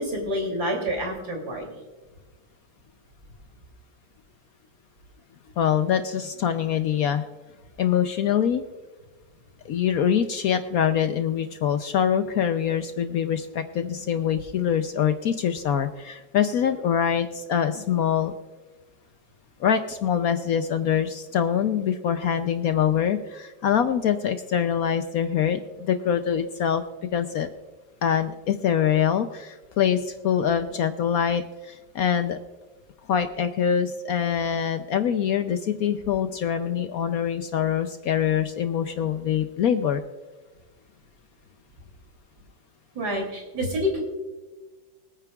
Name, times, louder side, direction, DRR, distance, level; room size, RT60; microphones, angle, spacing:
voice 1, 0.0-1.8 42.9-44.0, equal, 55° right, 1 dB, 3.4 m, -28 dB
voice 2, 5.6-7.2 7.8-8.6 9.6-18.3 19.6-26.8 27.1-27.5 28.0-32.4 33.1-40.0, left 8 dB, 70° left, 9 dB, 0.9 m, -24 dB
24.5 x 9.1 x 2.3 m, 1.2 s
omnidirectional pair, 2.0 m